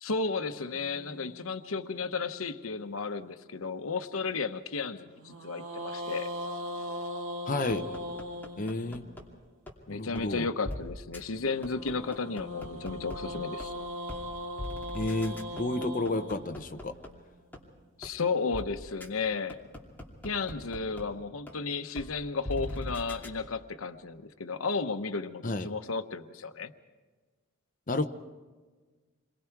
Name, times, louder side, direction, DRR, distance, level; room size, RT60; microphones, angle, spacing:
voice 1, 0.0-6.3 9.9-13.7 18.0-19.6 20.2-26.7, left 4 dB, 90° left, 8 dB, 1.0 m, -33 dB
sound 1, 0.5-2.9 5.2-9.4 11.5-17.7, left 1 dB, 70° right, 2.3 m, -40 dB
voice 2, 7.5-7.9 8.6-9.0 9.9-10.5 14.9-17.0 25.4-25.7 27.9-28.1, left 2 dB, 40° left, 6 dB, 0.9 m, -31 dB
sound 2, 7.7-9.2 9.7-9.8 10.2-10.3 10.6-10.8 11.1-11.2 11.6-13.2 13.6-13.7 14.1-14.2 14.6-17.1 17.5-17.6 18.0-18.1 18.5-18.6 19.0-19.1 19.5-21.0 21.5-21.6 22.0-22.1 22.4-23.3, left 1 dB, 10° left, 2.8 m, -39 dB
28.0 x 22.5 x 4.7 m, 1.4 s
head